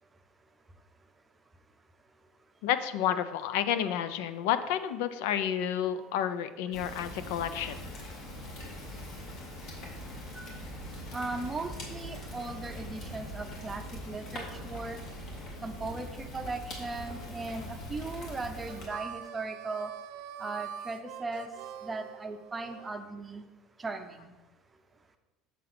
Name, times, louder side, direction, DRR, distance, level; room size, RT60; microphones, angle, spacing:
voice 1, 2.6-7.8, left 10 dB, 80° left, 12 dB, 0.5 m, -30 dB
Fire, 6.7-18.9, left 1 dB, 50° left, 1.8 m, -42 dB
voice 2, 11.1-15.0 15.6-19.9 20.4-21.5 21.8-23.5 23.8-24.3, right 3 dB, 15° right, 6 dB, 0.6 m, -38 dB
Harmonica, 18.7-22.9, right 10 dB, 65° right, 0.4 m, -44 dB
6.8 x 3.8 x 6.0 m, 1.1 s
cardioid pair, 135°, 0 cm